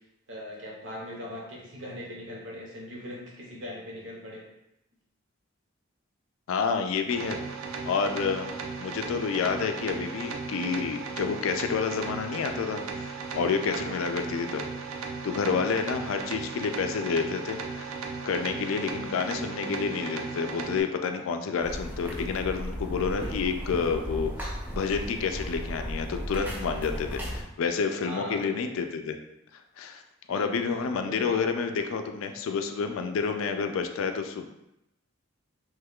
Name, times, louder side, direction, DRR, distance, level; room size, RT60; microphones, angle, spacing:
voice 1, 0.3-4.4 13.7-14.0 23.2-23.3 28.0-28.7 30.3-31.5, left 1 dB, 65° right, -3 dB, 0.9 m, -40 dB
voice 2, 6.5-7.4 7.9-8.5 8.8-14.6 15.2-17.9 18.3-29.2 29.8-30.0 30.3-34.5, left 5 dB, 80° left, 6 dB, 0.3 m, -29 dB
sound 1, 7.1-20.8, right 4 dB, 85° right, 0.4 m, -36 dB
sound 2, 21.6-27.4, equal, 10° right, 0.4 m, -35 dB
3.1 x 2.3 x 3.5 m, 0.85 s
head